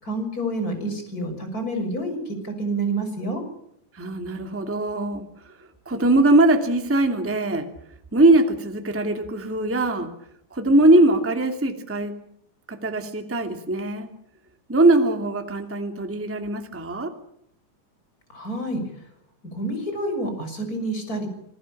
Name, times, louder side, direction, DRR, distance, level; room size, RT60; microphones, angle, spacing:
voice 1, 0.0-3.4 18.3-18.8 19.4-21.3, right 1 dB, 25° left, 6 dB, 6.7 m, -28 dB
voice 2, 3.9-5.2 5.9-7.7 8.1-10.1 10.5-12.1 12.7-14.1 14.7-17.1, right 2 dB, 5° right, 5 dB, 2.0 m, -21 dB
28.0 x 20.0 x 7.4 m, 0.73 s
omnidirectional pair, 3.8 m